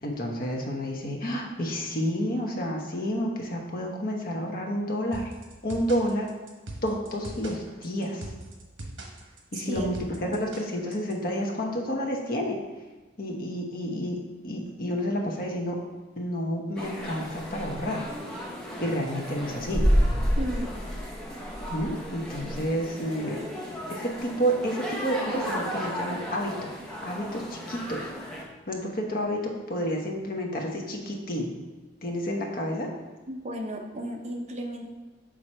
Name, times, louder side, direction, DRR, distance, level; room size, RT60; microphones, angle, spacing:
voice 1, 0.0-5.3 5.6-6.3 6.8-8.3 9.5-9.9 10.2-12.6 13.2-14.2 14.4-15.8 16.2-18.0 18.8-19.8 21.7-23.4 23.9-26.5 27.0-28.1 28.7-31.5 32.0-32.9, equal, 50° left, 0 dB, 1.0 m, -30 dB
sound 1, 5.1-11.1, right 1 dB, 85° right, 1.0 m, -41 dB
sound 2, 16.8-28.4, equal, 5° left, 0.9 m, -31 dB
voice 2, 20.4-20.7 33.3-34.8, equal, 35° right, 1 dB, 0.8 m, -34 dB
6.2 x 3.9 x 4.3 m, 1.2 s
head